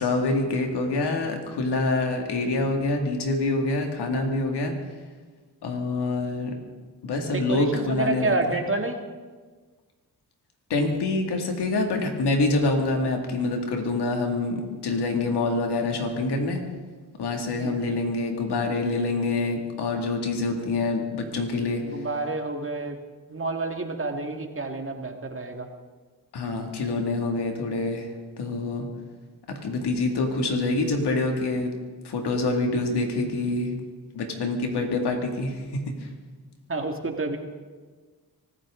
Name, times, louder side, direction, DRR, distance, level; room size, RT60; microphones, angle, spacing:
voice 1, 0.0-4.7 5.6-6.6 7.0-8.6 10.7-16.6 17.2-21.8 26.3-28.1 28.4-28.9 29.5-31.7 32.0-33.8 34.1-36.1, left 2 dB, 90° left, 3 dB, 2.4 m, -26 dB
voice 2, 7.3-9.0 17.6-17.9 21.8-23.0 23.3-25.7 36.7-37.4, right 3 dB, 35° right, 4 dB, 2.0 m, -29 dB
24.5 x 13.5 x 3.8 m, 1.4 s
cardioid pair, 70°, 39 cm